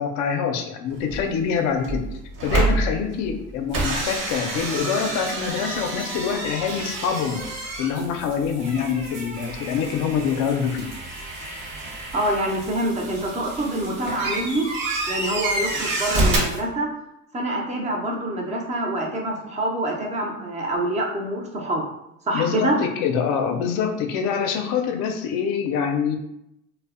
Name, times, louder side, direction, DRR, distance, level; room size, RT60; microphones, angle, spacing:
voice 1, 0.0-2.0 2.4-7.4 7.8-10.9 22.3-26.2, left 7 dB, 45° left, 5 dB, 0.4 m, -25 dB
sound 1, 0.9-1.5 1.8-3.4 3.7-12.7 13.1-16.4, right 2 dB, 55° right, 0.9 m, -28 dB
sound 2, 3.7-16.6, right 2 dB, 85° right, 0.9 m, -46 dB
voice 2, 12.1-14.7 15.1-16.9 17.3-21.9 22.3-22.8, right 1 dB, 20° right, 0 dB, 0.4 m, -26 dB
2.5 x 2.1 x 2.4 m, 0.83 s
hypercardioid pair, 90°, 41 cm